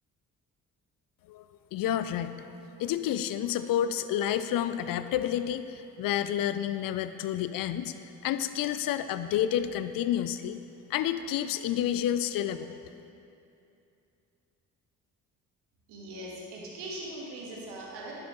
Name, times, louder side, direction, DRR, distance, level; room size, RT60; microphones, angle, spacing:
voice 1, 1.7-10.6 10.9-13.0, left 11 dB, 55° left, 12 dB, 0.5 m, -30 dB
voice 2, 15.9-18.2, right 1 dB, 70° right, -3 dB, 1.6 m, -40 dB
11.0 x 6.4 x 3.1 m, 2.7 s
hypercardioid pair, 45°, 43 cm